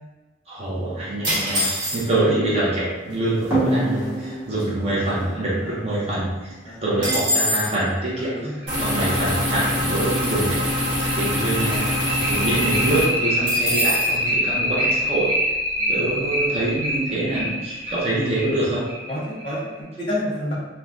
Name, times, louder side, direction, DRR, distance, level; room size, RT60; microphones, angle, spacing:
voice 1, 0.5-6.5 6.8-8.3 8.8-10.6 11.0-15.3 15.9-18.8, right 1 dB, 30° right, -7 dB, 0.5 m, -25 dB
sound 1, 1.2-2.3 3.1-3.2 3.4-3.8 4.2-5.7 6.0-6.1 6.4-7.8 13.5-14.2, equal, 50° right, 1.2 m, -25 dB
sound 2, 3.5-6.7 8.1-8.2 8.6-8.7 9.1-9.2 9.6-19.7, equal, 15° right, 1.0 m, -25 dB
voice 2, 8.1-8.6 15.8-16.0 17.3-17.4 19.1-20.5, left 1 dB, 25° left, -8 dB, 0.9 m, -30 dB
sound 3, 8.7-13.1, left 1 dB, 75° right, 0.9 m, -24 dB
3.1 x 2.1 x 2.4 m, 1.2 s
head